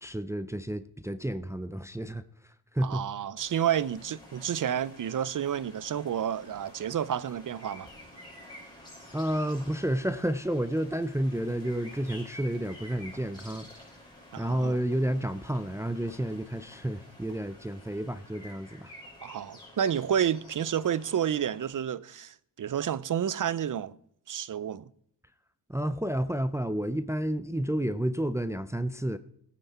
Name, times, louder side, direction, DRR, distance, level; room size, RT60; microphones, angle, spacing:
voice 1, 0.0-2.2 2.7-3.0 9.1-13.7 14.4-18.9 25.7-29.2, right 1 dB, 5° right, 0.6 m, -30 dB
voice 2, 2.8-7.9 14.3-14.8 19.2-24.0 24.3-24.9, right 9 dB, 50° right, 0.6 m, -30 dB
sound 1, 3.4-21.7, left 1 dB, 10° left, 5.5 m, -50 dB
17.0 x 9.2 x 4.3 m
wide cardioid pair, 105°, 41 cm